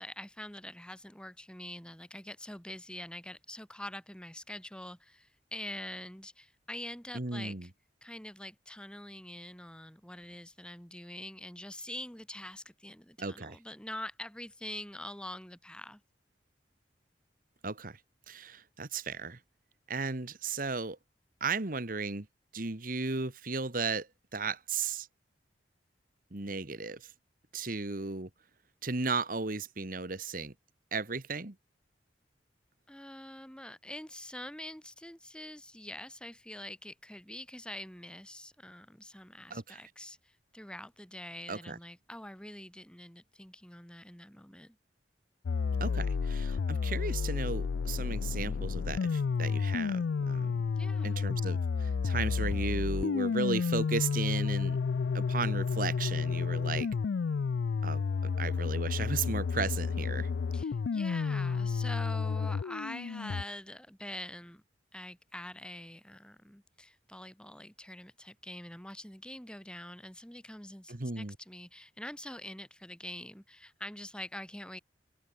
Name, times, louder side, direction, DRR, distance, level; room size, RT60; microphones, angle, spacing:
voice 1, 0.0-7.7 8.0-16.0 27.7-27.8 32.9-44.8 50.8-51.2 60.5-64.6 64.9-74.8, left 1 dB, 5° left, 2.6 m, -45 dB
voice 2, 7.1-7.7 13.2-13.6 17.6-18.0 18.3-19.4 19.9-21.0 21.4-22.3 22.5-25.1 26.3-27.1 27.5-28.3 28.8-30.5 30.9-31.5 39.5-39.8 41.5-41.8 45.8-50.6 51.0-54.8 55.1-56.9 57.8-58.0 58.4-60.3 70.9-71.3, right 4 dB, 50° right, 1.5 m, -35 dB
sound 1, 45.5-63.4, left 5 dB, 85° left, 0.4 m, -31 dB
open air
head